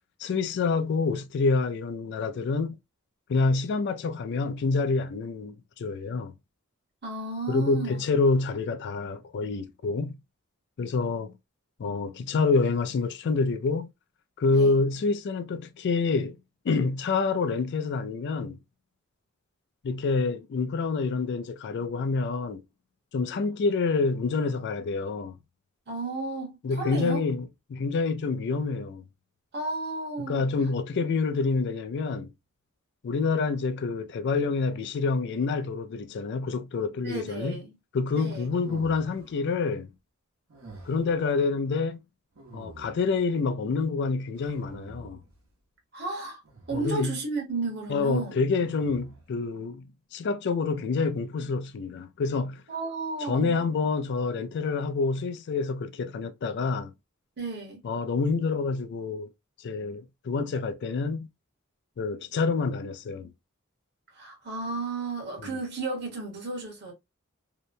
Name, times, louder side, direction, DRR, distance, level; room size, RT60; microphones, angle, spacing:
voice 1, 0.2-2.8 3.3-6.3 7.5-10.2 10.8-11.3 11.8-13.9 14.4-16.4 16.6-18.6 19.8-22.6 23.1-25.4 26.6-29.0 30.2-32.3 33.0-37.6 37.9-39.9 40.8-42.0 42.5-45.2 46.7-47.1 47.9-52.6 53.2-56.9 57.8-59.3 59.6-61.3 62.0-63.3 65.4-65.6, left 4 dB, 55° left, 0.4 m, -27 dB
voice 2, 7.0-8.0 14.5-14.7 25.9-27.3 29.5-30.4 37.0-37.8 38.1-38.5 45.9-46.4 46.7-48.4 52.7-53.6 57.4-57.8 64.1-66.9, right 3 dB, 55° right, 1.1 m, -33 dB
sound 1, 38.4-39.4 40.5-41.2 42.4-43.2 44.4-45.4 46.4-47.0 48.6-49.3, right 2 dB, 90° right, 1.0 m, -48 dB
2.8 x 2.1 x 2.5 m
head